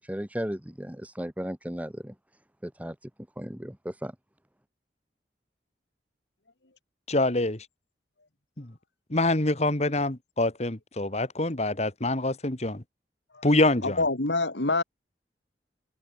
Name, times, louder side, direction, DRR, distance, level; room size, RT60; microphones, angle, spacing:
voice 1, 0.0-2.1 2.6-3.1 3.3-4.1, equal, 10° right, 1.8 m, -35 dB
voice 2, 7.1-7.7 8.6-8.7 9.1-12.8 13.4-14.0, left 2 dB, 40° left, 1.9 m, -25 dB
voice 3, 13.8-14.8, left 3 dB, 85° left, 2.8 m, -26 dB
head